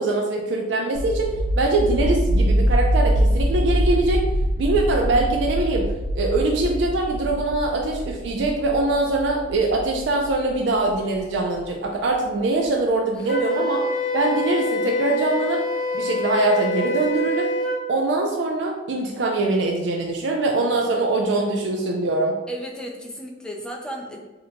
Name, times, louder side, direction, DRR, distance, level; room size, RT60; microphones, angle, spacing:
voice 1, 0.0-4.2 4.6-13.8 14.1-15.6 15.9-17.5 17.9-22.4, right 2 dB, 65° right, 1 dB, 0.4 m, -23 dB
sound 1, 0.9-11.6, equal, 85° left, 0.4 m, -24 dB
Wind instrument woodwind instrument, 13.3-17.8, left 1 dB, 45° left, 1.0 m, -25 dB
voice 2, 22.5-24.2, right 1 dB, 5° left, -1 dB, 0.4 m, -34 dB
2.8 x 2.1 x 3.8 m, 1.1 s
head